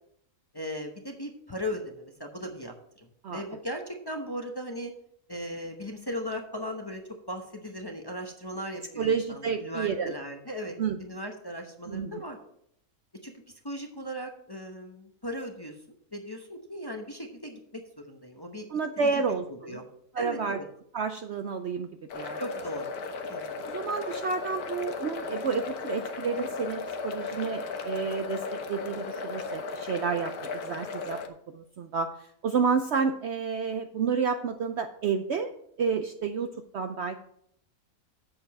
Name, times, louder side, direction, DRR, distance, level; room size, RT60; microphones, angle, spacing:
voice 1, 0.5-4.9 5.3-7.0 7.3-12.4 13.2-13.3 13.6-15.7 16.1-17.6 18.0-18.7 19.0-19.2 19.6-19.8 20.2-20.6 22.4-22.9 23.3-23.8, equal, 20° left, 3 dB, 0.8 m, -37 dB
voice 2, 9.0-10.1 10.8-11.0 11.9-12.2 18.7-19.8 20.1-20.6 20.9-21.9 22.1-22.4 23.6-31.2 31.5-35.5 35.8-37.2, right 5 dB, 60° right, 8 dB, 0.7 m, -30 dB
sound 1, 22.1-31.3, left 4 dB, 90° left, 1.5 m, -36 dB
7.7 x 6.8 x 5.9 m, 0.72 s
omnidirectional pair, 1.6 m